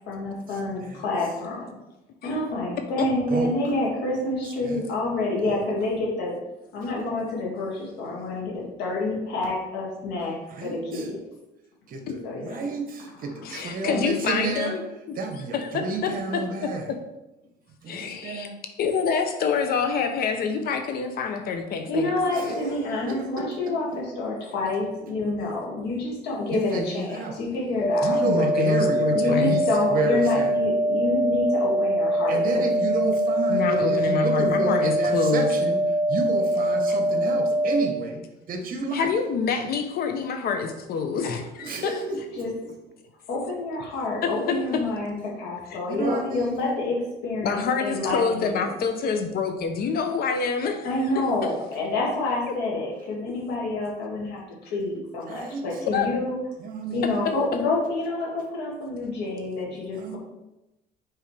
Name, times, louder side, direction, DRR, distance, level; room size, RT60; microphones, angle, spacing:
voice 1, 0.1-1.6 2.2-6.3 6.7-10.4 10.6-11.2 12.2-12.6 13.8-14.0 21.9-28.2 29.1-32.4 42.4-42.5 43.3-48.7 50.8-56.4 56.9-60.2, left 2 dB, 85° left, -3 dB, 2.1 m, -28 dB
voice 2, 3.0-3.5 4.6-4.8 5.5-5.6 10.5-11.1 11.9-14.7 15.2-16.9 17.8-18.5 22.3-23.7 26.5-27.4 28.0-29.6 29.9-30.5 32.3-35.8 36.1-39.1 41.6-42.7 45.9-46.7 55.3-55.6 56.6-57.3 59.9-60.2, right 3 dB, 55° right, 4 dB, 1.2 m, -31 dB
voice 3, 13.4-14.8 15.1-15.2 15.5-16.7 17.9-18.5 18.8-22.1 22.4-22.5 25.5-25.6 28.2-29.6 33.5-35.5 36.9-37.0 38.9-42.2 44.2-44.8 45.7-45.8 47.4-50.9 51.2-51.3 55.9-56.1 57.0-57.3, left 6 dB, 65° left, 6 dB, 0.8 m, -27 dB
sound 1, 27.8-37.8, right 1 dB, ahead, 1.2 m, -23 dB
6.5 x 4.8 x 3.3 m, 0.96 s
cardioid pair, 110°, 17 cm